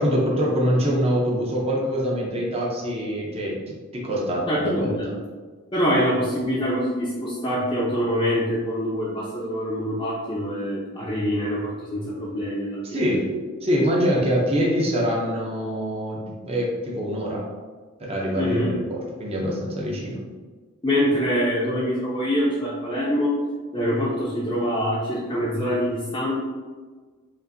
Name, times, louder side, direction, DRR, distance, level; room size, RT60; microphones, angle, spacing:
voice 1, 0.0-4.9 12.9-13.3 13.6-17.5 18.0-20.2, equal, 30° right, -4 dB, 0.7 m, -24 dB
voice 2, 4.5-5.1 5.7-13.1 18.3-18.7 20.8-23.4 23.7-26.3, equal, 20° left, -8 dB, 0.5 m, -25 dB
5.2 x 2.6 x 2.6 m, 1.4 s
head